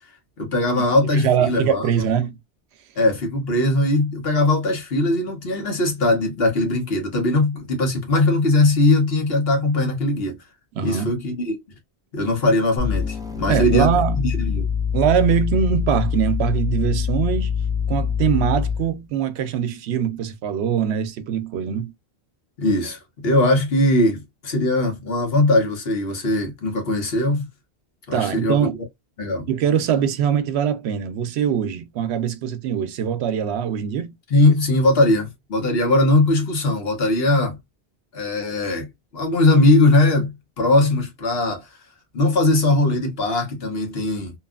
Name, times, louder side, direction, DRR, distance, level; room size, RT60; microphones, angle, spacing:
voice 1, 0.4-1.8 3.0-10.3 10.8-11.6 12.1-14.7 22.6-27.5 28.1-28.6 29.2-29.5 34.3-37.6 38.1-38.9 39.1-41.7 42.1-44.3, left 2 dB, 70° left, 1.2 m, -20 dB
voice 2, 1.1-2.4 10.7-11.1 13.5-14.2 14.9-17.5 17.9-21.9 28.1-28.8 29.5-34.1, right 8 dB, 90° right, 0.8 m, -22 dB
sound 1, 12.8-18.9, left 7 dB, 5° right, 0.4 m, -24 dB
2.8 x 2.3 x 2.2 m
omnidirectional pair, 1.1 m